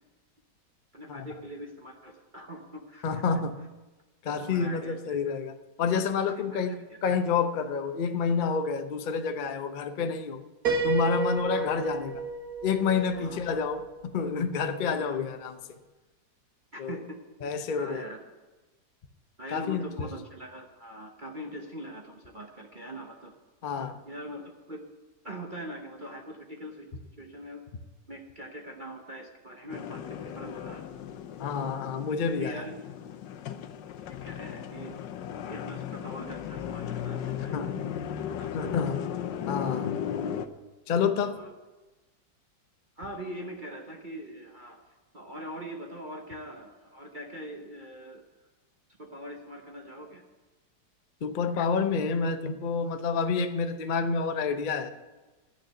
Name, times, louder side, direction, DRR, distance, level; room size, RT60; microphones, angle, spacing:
voice 1, 0.9-3.2 4.3-5.0 5.8-6.6 6.9-7.0 11.5-11.7 13.1-13.4 14.9-15.2 16.7-17.2 17.8-18.2 19.4-23.3 24.0-24.8 25.2-26.9 27.2-27.6 28.1-30.9 32.4-32.7 33.5-33.6 34.0-35.0 35.3-37.6 37.9-38.0 38.4-38.6 41.2-41.6 43.0-48.3 49.0-50.2, equal, 35° right, 1 dB, 0.9 m, -42 dB
voice 2, 3.0-3.6 4.2-10.4 10.8-12.3 12.6-13.8 14.1-15.6 16.8-17.0 17.4-18.0 19.5-20.1 23.6-24.0 31.4-32.6 37.4-37.7 38.5-39.0 39.5-40.0 40.9-41.4 51.2-54.9, left 5 dB, 55° left, 7 dB, 0.5 m, -29 dB
Piano, 10.6-14.4, right 3 dB, 55° right, 1.9 m, -32 dB
sound 1, 29.7-40.5, left 9 dB, 80° left, 1.3 m, -36 dB
11.5 x 6.6 x 9.0 m, 1.2 s
omnidirectional pair, 1.9 m